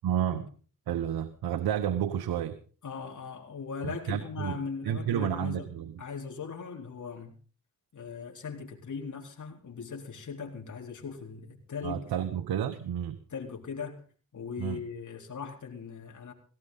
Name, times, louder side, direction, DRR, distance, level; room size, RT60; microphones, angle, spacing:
voice 1, 0.0-0.5 0.9-2.6 3.8-4.6 4.8-6.0 11.8-13.2 14.6-14.8, right 9 dB, 80° right, 9 dB, 1.2 m, -31 dB
voice 2, 2.8-5.7 6.0-7.4 7.9-12.0 13.3-14.0 14.3-16.3, left 5 dB, 55° left, 1 dB, 4.0 m, -39 dB
17.0 x 17.0 x 4.0 m, 0.40 s
cardioid pair, 60°, 37 cm